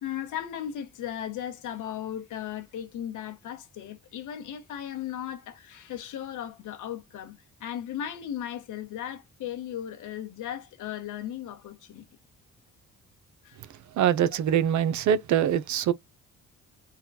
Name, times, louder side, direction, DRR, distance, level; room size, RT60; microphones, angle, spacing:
voice 1, 0.0-12.1 13.4-13.6, left 10 dB, 80° left, 1.4 m, -36 dB
voice 2, 14.0-15.9, right 9 dB, 70° right, 0.7 m, -23 dB
4.1 x 2.3 x 4.1 m
cardioid pair, 90°, 30 cm